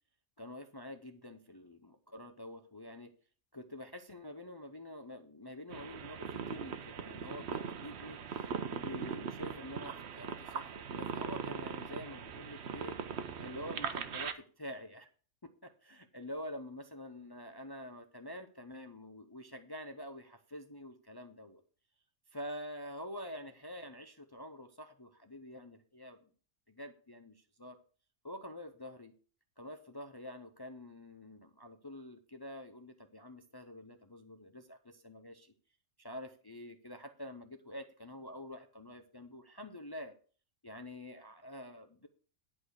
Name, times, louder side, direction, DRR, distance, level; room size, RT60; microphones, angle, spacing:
voice 1, 0.4-3.1 3.5-13.0 13.4-15.1 15.4-21.6 22.3-26.3 26.7-27.8 28.2-29.1 29.6-35.5 36.0-40.2 40.6-42.1, left 1 dB, 25° left, 7 dB, 0.5 m, -47 dB
sound 1, 5.7-14.3, right 7 dB, 60° right, 1.0 m, -40 dB
10.5 x 4.9 x 6.4 m, 0.40 s
omnidirectional pair, 1.4 m